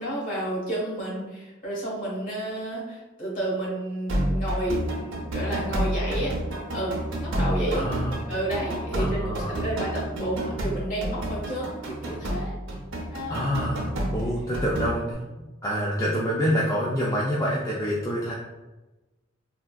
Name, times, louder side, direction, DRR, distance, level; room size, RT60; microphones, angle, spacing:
voice 1, 0.0-6.3 6.7-7.9 8.3-9.2 9.5-12.5 13.1-13.5, right 1 dB, 40° left, -6 dB, 1.3 m, -31 dB
sound 1, 4.1-15.1, right 1 dB, 70° right, 0.6 m, -29 dB
voice 2, 7.7-8.2 9.0-9.7 13.3-15.2 15.6-18.3, equal, 15° left, -5 dB, 0.3 m, -27 dB
3.5 x 2.3 x 2.3 m, 1.1 s
head